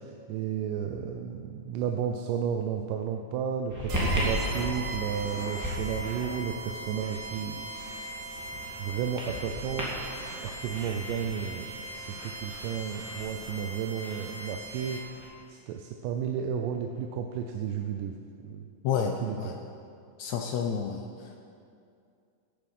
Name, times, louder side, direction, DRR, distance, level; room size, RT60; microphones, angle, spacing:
voice 1, 0.0-7.7 8.8-11.7 11.9-15.0 15.5-18.2 18.4-18.7 19.2-19.5, right 8 dB, 90° right, 4 dB, 2.2 m, -33 dB
sound 1, 3.7-15.3, equal, 5° right, 2.1 m, -37 dB
sound 2, 3.9-15.3, right 2 dB, 60° right, 2.7 m, -40 dB
voice 2, 18.8-19.6 20.2-21.4, left 7 dB, 75° left, 4 dB, 1.7 m, -30 dB
15.5 x 8.4 x 5.4 m, 2.4 s
omnidirectional pair, 3.7 m